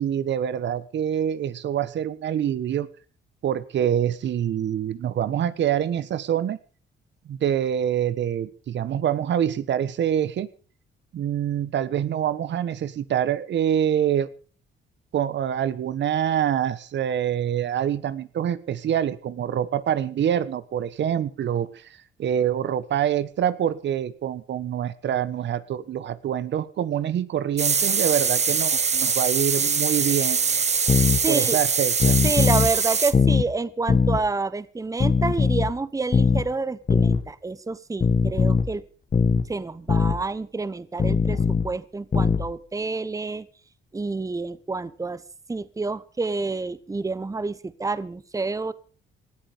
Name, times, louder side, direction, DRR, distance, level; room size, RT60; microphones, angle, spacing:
voice 1, 0.0-2.9 3.4-6.6 7.3-10.5 11.1-14.3 15.1-30.6 31.3-32.2, right 10 dB, 65° right, 16 dB, 1.3 m, -25 dB
sound 1, 27.6-33.1, right 5 dB, 35° right, 1.3 m, -23 dB
sound 2, 30.9-31.2 32.0-32.7 33.1-33.5 33.9-34.2 35.0-35.7 36.1-36.4 36.9-37.2 38.0-38.7 39.1-39.5 39.9-40.2 41.0-41.7 42.1-42.5, left 5 dB, 40° left, 1.9 m, -20 dB
voice 2, 31.2-31.6 32.2-38.8 39.5-41.4 41.6-43.5 43.9-45.2 45.5-48.7, right 3 dB, 15° right, 16 dB, 1.1 m, -28 dB
19.0 x 13.5 x 5.2 m, 0.39 s
cardioid pair, 90°, 20 cm